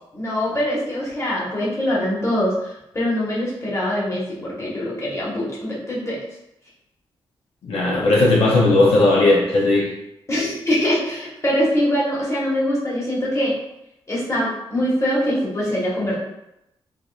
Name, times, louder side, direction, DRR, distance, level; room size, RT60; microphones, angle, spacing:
voice 1, 0.1-6.2 10.3-13.5 14.1-16.2, equal, 30° left, -6 dB, 1.2 m, -23 dB
voice 2, 7.6-10.0, left 2 dB, 85° left, -3 dB, 0.6 m, -16 dB
3.6 x 3.0 x 2.3 m, 0.86 s
wide cardioid pair, 105°, 10 cm